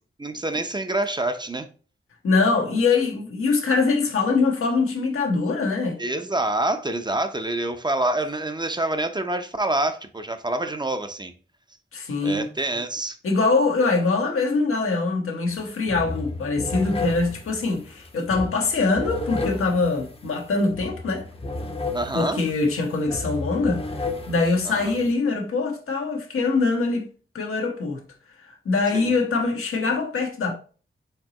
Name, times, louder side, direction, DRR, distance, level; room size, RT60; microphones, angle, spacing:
voice 1, 0.2-1.7 6.0-11.3 12.2-13.2 21.9-22.4 24.7-24.9 28.9-29.1, right 2 dB, 20° right, 0.6 m, -26 dB
voice 2, 2.2-6.0 11.9-12.5 13.2-21.3 22.1-23.8 24.3-27.1 27.3-28.0 28.4-30.5, left 3 dB, 90° left, 1.0 m, -23 dB
sound 1, 15.5-15.6 15.9-25.1, left 3 dB, 25° left, 0.7 m, -33 dB
4.4 x 4.0 x 2.9 m
cardioid pair, 75°, 21 cm